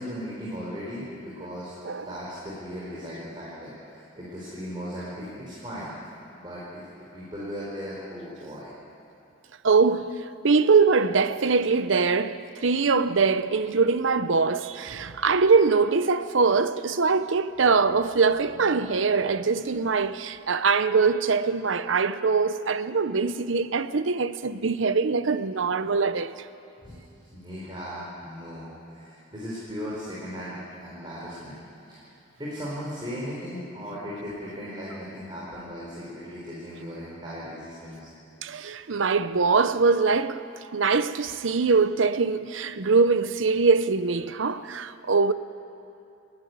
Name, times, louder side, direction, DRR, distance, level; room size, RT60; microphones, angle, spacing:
voice 1, 0.0-1.8 2.1-5.9 6.4-6.8 7.1-8.7 26.8-27.0 27.3-31.6 31.9-32.1 32.4-38.1, equal, 25° right, 4.3 m, -37 dB
voice 2, 9.6-10.2 10.4-26.3 38.4-40.4 40.7-45.3, right 4 dB, 75° right, 0.7 m, -23 dB
29.5 x 10.5 x 9.5 m
head